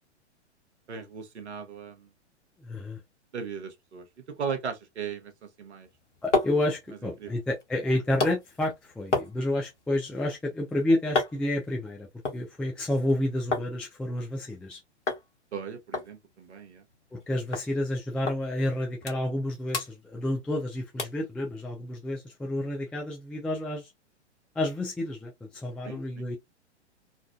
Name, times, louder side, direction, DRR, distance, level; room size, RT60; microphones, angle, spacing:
voice 1, 0.9-2.1 3.3-4.1 4.4-5.9 7.2-7.4 15.5-16.8 25.8-26.3, right 6 dB, 70° right, 1.3 m, -37 dB
voice 2, 2.6-3.0 6.2-14.8 17.1-23.9 24.6-26.4, left 1 dB, 5° left, 0.4 m, -30 dB
sound 1, 5.8-13.7 14.0-14.7 15.1-15.3 15.5-15.6 15.9-17.2 17.5-17.7 18.3-18.4 18.8-19.4 19.7-20.6 21.0-21.3 21.8-21.9, left 3 dB, 85° left, 1.4 m, -33 dB
4.0 x 2.5 x 2.3 m
figure-of-eight pair, 110°, 35 cm